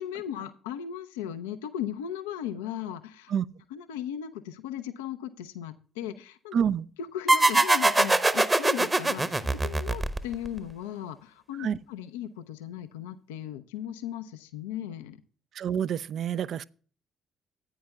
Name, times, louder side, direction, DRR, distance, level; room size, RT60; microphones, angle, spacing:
voice 1, 0.0-3.3 3.7-6.6 7.0-15.2, left 10 dB, 75° left, 0.5 m, -37 dB
voice 2, 6.5-6.9 11.6-11.8 15.5-16.6, right 8 dB, 55° right, 0.3 m, -28 dB
sound 1, 7.3-10.6, right 2 dB, 20° right, 0.9 m, -23 dB
14.5 x 9.3 x 2.3 m
figure-of-eight pair, 45°, 0 cm